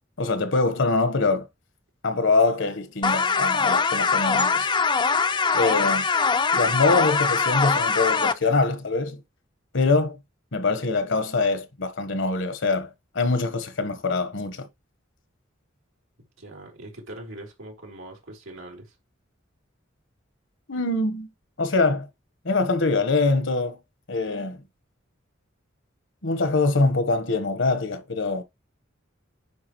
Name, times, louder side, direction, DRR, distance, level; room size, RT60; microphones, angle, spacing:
voice 1, 0.2-1.5 2.0-4.7 5.5-6.1 6.5-9.2 9.7-10.2 10.5-14.7 20.7-21.3 21.6-22.1 22.4-23.8 24.1-24.6 26.2-28.4, left 3 dB, 65° left, 1.2 m, -24 dB
sound 1, 3.0-8.3, left 5 dB, 25° left, 0.5 m, -22 dB
voice 2, 16.4-18.9, right 1 dB, 90° right, 3.5 m, -41 dB
9.6 x 4.8 x 3.1 m
head